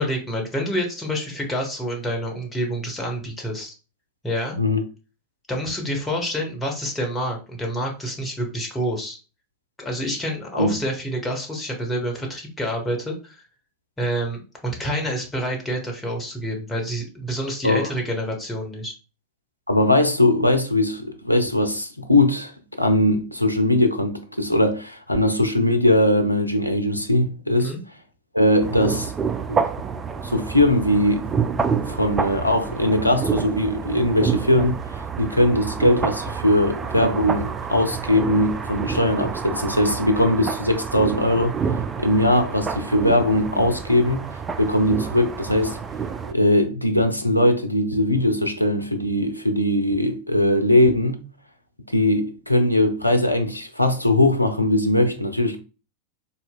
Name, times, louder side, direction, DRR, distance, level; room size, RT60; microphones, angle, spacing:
voice 1, 0.0-3.7 4.2-4.6 5.5-9.2 9.8-13.4 14.0-18.9 27.6-27.8, equal, 10° left, 1.1 m, -28 dB
voice 2, 19.7-22.5 22.8-27.8 28.3-29.1 29.5-29.6 30.2-31.3 31.9-34.8 35.2-41.6 42.0-44.2 44.6-45.8 46.3-51.2 51.9-55.6, left 1 dB, 90° left, 0.5 m, -20 dB
sound 1, 28.6-46.3, right 6 dB, 20° right, 0.3 m, -28 dB
4.2 x 2.8 x 2.2 m
figure-of-eight pair, 90°, 0 cm